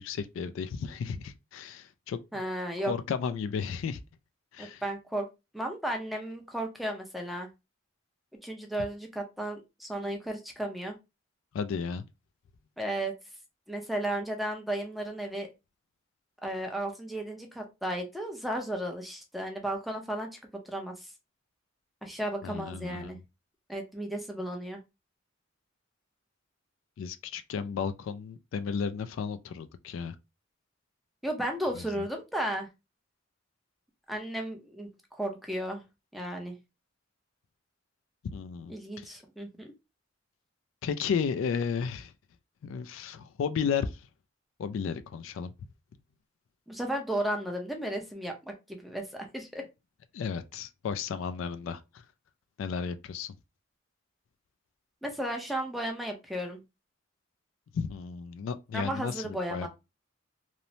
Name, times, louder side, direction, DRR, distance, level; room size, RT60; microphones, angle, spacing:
voice 1, 0.0-2.2 2.8-4.0 4.5-4.8 11.5-12.0 22.4-23.2 27.0-30.2 31.7-32.0 38.2-39.1 40.8-42.1 42.6-44.1 44.6-45.5 50.1-52.0 52.6-53.3 57.7-59.7, left 6 dB, 70° left, 0.3 m, -33 dB
voice 2, 2.3-2.9 4.6-5.3 5.5-7.5 8.4-11.0 12.8-13.1 13.7-15.5 16.4-20.3 20.7-21.1 22.0-23.2 23.7-24.8 31.2-32.7 34.1-35.8 36.1-36.5 38.7-39.7 46.7-49.6 55.0-56.6 58.7-59.7, right 1 dB, ahead, 0.5 m, -34 dB
3.0 x 2.0 x 2.6 m
head